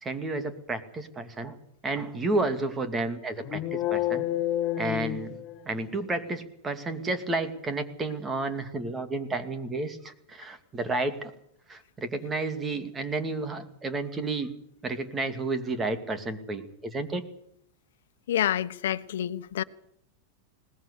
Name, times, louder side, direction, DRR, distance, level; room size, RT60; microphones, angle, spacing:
voice 1, 0.0-1.6 1.8-4.2 4.8-5.4 5.7-11.3 11.7-14.5 14.8-17.2, right 2 dB, 15° right, 2.4 m, -31 dB
sound 1, 3.4-5.9, left 13 dB, 35° left, 1.9 m, -29 dB
voice 2, 18.3-19.6, left 11 dB, 85° left, 1.2 m, -28 dB
21.0 x 19.0 x 8.4 m
supercardioid pair, 150°, 0 cm